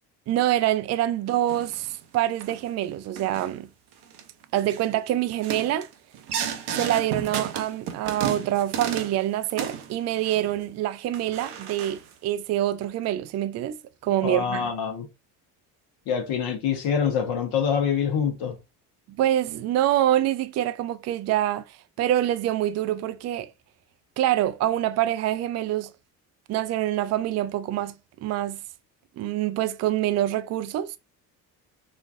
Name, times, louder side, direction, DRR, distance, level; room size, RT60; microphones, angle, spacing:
voice 1, 0.3-3.7 4.5-5.9 6.8-13.8 14.0-14.7 19.2-23.5 24.2-25.9 26.5-27.9 28.2-28.6 29.2-31.0, right 13 dB, 35° right, 0.4 m, -25 dB
sound 1, 1.5-1.9 2.4-2.6 3.2-3.5 3.9-4.2 4.6-4.9 5.3-9.2 9.5-10.6 11.1-12.1, right 8 dB, 60° right, 0.7 m, -33 dB
voice 2, 14.2-15.1 16.1-18.6, left 7 dB, 60° left, 1.0 m, -25 dB
4.2 x 2.3 x 2.4 m
hypercardioid pair, 55°, 45 cm